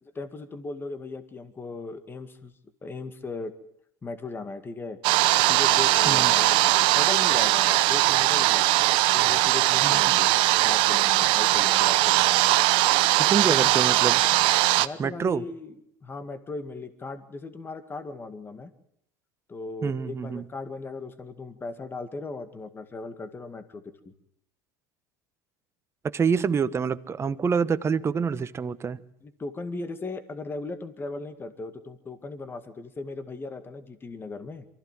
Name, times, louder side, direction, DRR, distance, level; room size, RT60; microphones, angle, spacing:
voice 1, 0.0-2.5 2.8-3.5 4.0-5.0 5.4-8.7 9.1-12.2 13.4-13.7 14.8-18.7 19.5-24.1 29.2-34.7, left 3 dB, 20° left, 9 dB, 2.0 m, -37 dB
sound 1, 5.0-14.9, right 18 dB, 60° right, 0.9 m, -20 dB
voice 2, 13.3-14.2 15.0-15.4 19.8-20.4 26.1-29.0, right 6 dB, 25° right, 12 dB, 1.1 m, -26 dB
24.0 x 15.5 x 7.5 m, 0.76 s
supercardioid pair, 95°, 10 cm